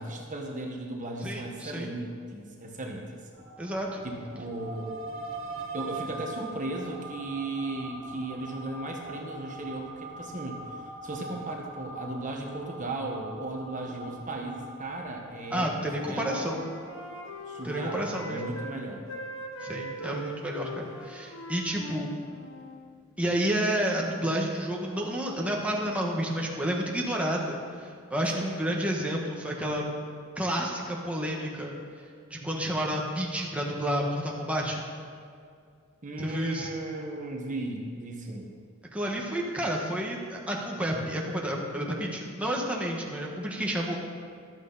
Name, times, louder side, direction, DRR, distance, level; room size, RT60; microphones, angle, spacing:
voice 1, 0.0-3.2 4.0-4.9 5.7-10.6 11.0-15.7 16.0-16.5 17.5-19.0 28.3-28.6 36.0-38.5, right 2 dB, 40° right, 1 dB, 1.4 m, -36 dB
voice 2, 1.2-1.9 3.6-4.0 15.5-16.6 17.6-18.4 19.6-22.1 23.2-29.8 30.4-31.7 32.3-34.8 36.2-36.7 38.9-44.0, equal, 5° right, -2 dB, 1.5 m, -30 dB
sound 1, 3.3-17.3, right 2 dB, 75° right, 2.1 m, -42 dB
Wind instrument woodwind instrument, 15.7-18.8 19.1-22.8, right 1 dB, 75° left, 1.6 m, -40 dB
14.5 x 12.0 x 4.1 m, 2.2 s
head